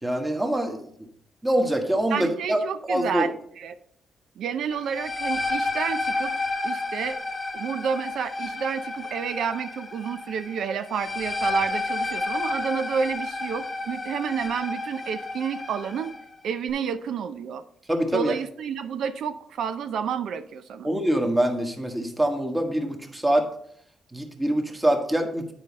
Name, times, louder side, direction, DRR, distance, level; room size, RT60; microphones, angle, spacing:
voice 1, 0.0-1.1 1.4-2.6 2.9-3.3 17.9-18.3 20.8-23.5 24.1-25.5, right 1 dB, 15° right, 4 dB, 1.4 m, -24 dB
voice 2, 2.1-3.7 4.4-6.3 6.6-7.2 7.5-16.1 16.4-17.6 18.1-20.9, right 7 dB, 70° right, 10 dB, 0.5 m, -30 dB
sound 1, 4.7-16.2, left 3 dB, 25° left, 1.1 m, -31 dB
9.0 x 4.9 x 4.2 m, 0.69 s
cardioid pair, 90°, 0 cm